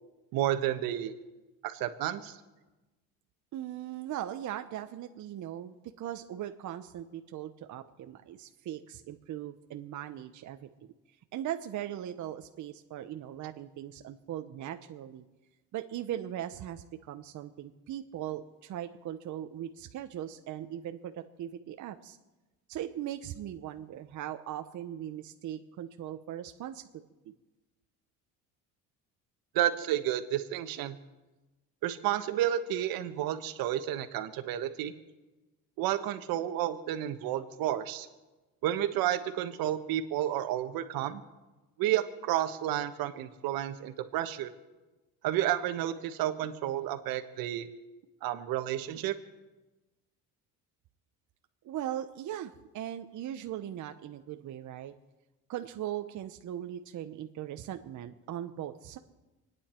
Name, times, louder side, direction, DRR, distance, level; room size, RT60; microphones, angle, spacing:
voice 1, 0.3-1.1 1.6-2.4 29.5-31.0 31.8-34.9 35.8-38.1 38.6-41.2 41.8-44.5 45.2-47.7 48.2-49.1, right 12 dB, 75° right, 10 dB, 1.3 m, -31 dB
voice 2, 3.5-10.7 11.3-15.2 15.7-22.2 22.7-26.8 27.2-27.3 51.6-54.9 55.5-59.0, right 11 dB, 55° right, 7 dB, 0.9 m, -39 dB
28.0 x 9.7 x 4.5 m, 1.1 s
cardioid pair, 95°, 35 cm